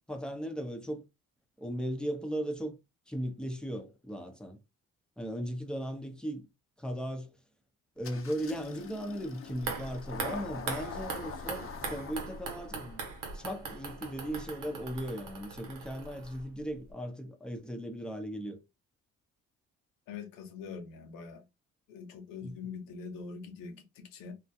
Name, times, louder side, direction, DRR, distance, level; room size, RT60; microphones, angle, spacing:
voice 1, 0.1-1.0 1.6-2.8 3.1-4.6 5.2-6.5 6.8-7.3 8.0-13.0 13.3-18.6 22.4-22.5, equal, 5° left, 0.6 m, -37 dB
Engine starting, 8.0-15.4, left 5 dB, 45° left, 0.6 m, -46 dB
sound 1, 9.5-16.6 16.9-17.0, right 4 dB, 75° right, 1.0 m, -40 dB
voice 2, 20.1-21.4 21.9-24.3, left 5 dB, 85° left, 0.8 m, -43 dB
2.3 x 2.1 x 2.6 m
supercardioid pair, 60°, 32 cm